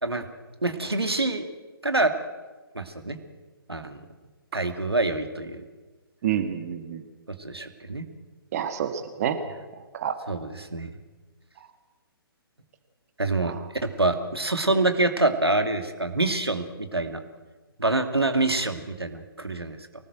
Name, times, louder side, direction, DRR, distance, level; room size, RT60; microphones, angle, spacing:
voice 1, 0.6-1.5 1.8-2.1 2.7-3.2 3.7-4.0 4.5-5.6 7.3-8.1 10.3-10.9 13.2-13.5 13.8-17.2 17.8-19.8, right 2 dB, 80° right, 7 dB, 2.4 m, -26 dB
voice 2, 6.2-7.0 8.5-9.4 9.9-10.2 13.4-13.6, right 9 dB, 40° right, 8 dB, 1.9 m, -28 dB
24.0 x 19.0 x 8.0 m, 1.3 s
figure-of-eight pair, 130°, 13 cm